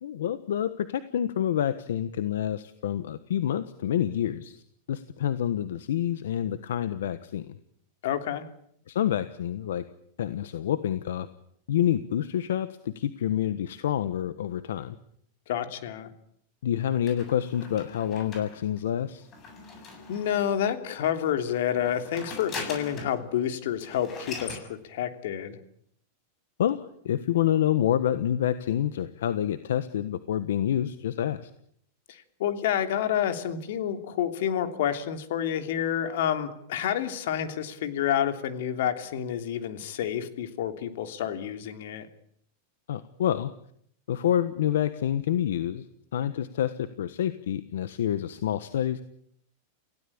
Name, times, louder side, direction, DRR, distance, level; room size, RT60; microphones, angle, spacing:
voice 1, 0.0-4.6 4.9-7.5 8.9-9.8 10.2-11.3 11.7-15.0 16.6-19.3 26.6-31.5 42.9-43.5 44.1-45.9 46.1-49.0, left 10 dB, 90° left, 13 dB, 1.3 m, -28 dB
voice 2, 8.0-8.4 15.5-16.1 20.1-25.6 32.1-42.1, left 10 dB, 70° left, 9 dB, 3.1 m, -29 dB
sound 1, 17.1-20.7 21.7-23.2 23.5-23.6 23.8-24.7, left 4 dB, 30° left, 7.7 m, -41 dB
28.5 x 17.0 x 8.8 m, 0.69 s
supercardioid pair, 145°, 0 cm